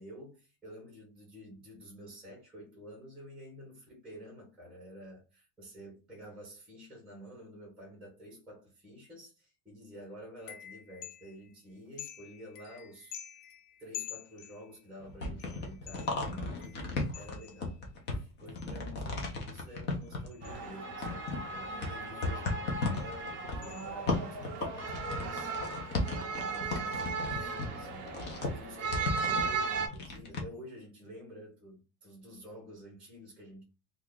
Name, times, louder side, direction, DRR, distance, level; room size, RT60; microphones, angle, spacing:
voice 1, 0.0-13.2 13.8-25.9 26.3-33.6, equal, ahead, 1.0 m, -50 dB
sound 1, 10.4-11.5 12.0-14.9 15.4-17.8 18.6-18.9 19.4-21.1 22.9-23.1 23.6-24.4 26.2-26.5 26.8-27.1, left 10 dB, 90° left, 0.7 m, -49 dB
sound 2, 15.0-20.7 21.0-30.4, left 3 dB, 25° left, 0.5 m, -35 dB
sound 3, 20.4-29.9, right 4 dB, 25° right, 0.5 m, -37 dB
2.7 x 2.4 x 3.5 m
supercardioid pair, 165°, 47 cm